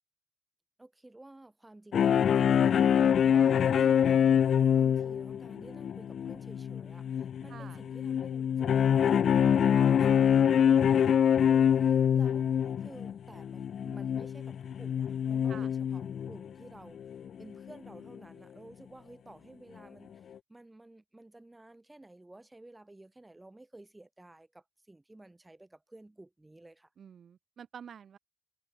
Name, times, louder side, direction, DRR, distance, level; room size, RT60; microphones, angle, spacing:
voice 1, 0.8-2.6 3.3-3.6 4.1-12.5 12.8-17.0 17.4-26.9, right 2 dB, 15° right, 7.3 m, -53 dB
sound 1, 1.9-16.5 17.0-17.3 17.7-17.8 18.1-18.2, left 8 dB, 70° left, 0.4 m, -25 dB
voice 2, 3.3-4.2 7.5-7.8 15.5-15.7 27.0-28.2, right 7 dB, 60° right, 5.5 m, -49 dB
cardioid pair, 100°, 0 cm